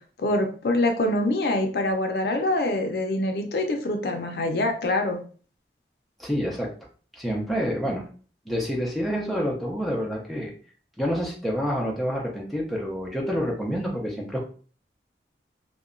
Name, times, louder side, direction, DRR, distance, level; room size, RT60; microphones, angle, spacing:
voice 1, 0.2-5.2, left 1 dB, 65° left, 4 dB, 0.5 m, -25 dB
voice 2, 6.2-6.7 7.1-8.0 8.5-10.5 11.0-14.4, equal, ahead, -1 dB, 0.4 m, -28 dB
2.8 x 2.1 x 2.4 m, 0.41 s
head